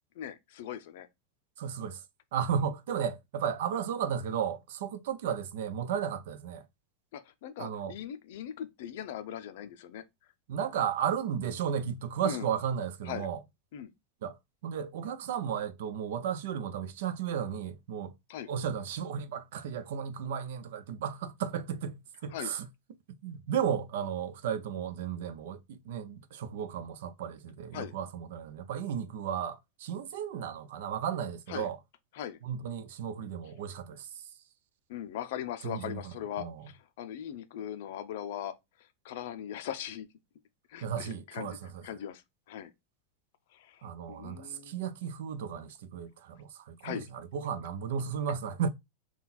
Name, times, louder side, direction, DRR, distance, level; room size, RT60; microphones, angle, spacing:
voice 1, 0.2-1.1 7.1-10.0 12.2-12.5 13.1-13.3 13.7-13.9 18.3-18.5 22.3-22.5 27.7-27.9 31.5-31.7 32.1-32.4 34.9-38.5 39.0-40.1 40.7-41.6 41.8-42.2 42.5-42.7 43.5-44.8 46.8-47.1, left 10 dB, 60° left, 0.5 m, -39 dB
voice 2, 1.6-2.0 2.3-6.6 7.6-7.9 10.5-13.4 14.2-18.1 18.5-22.7 23.2-31.8 32.4-34.3 35.6-36.6 40.8-41.8 43.8-48.7, right 8 dB, 70° right, 0.6 m, -34 dB
3.9 x 2.3 x 4.1 m
supercardioid pair, 170°, 0 cm